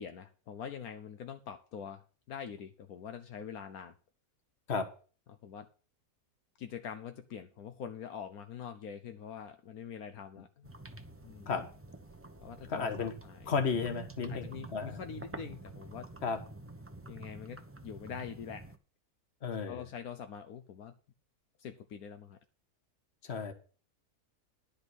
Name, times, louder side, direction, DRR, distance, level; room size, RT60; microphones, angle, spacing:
voice 1, 0.0-3.9 5.3-5.7 6.6-10.7 11.2-11.5 12.4-13.5 14.3-16.1 17.1-18.7 19.7-20.9 21.6-22.4, left 7 dB, 75° left, 7 dB, 1.2 m, -44 dB
sound 1, 10.6-18.8, right 2 dB, 15° right, 0.6 m, -48 dB
voice 2, 12.7-13.1 13.5-15.0 16.2-16.4 19.4-19.8 23.2-23.5, left 5 dB, 45° left, 7 dB, 1.6 m, -33 dB
10.5 x 5.3 x 8.2 m, 0.39 s
omnidirectional pair, 1.6 m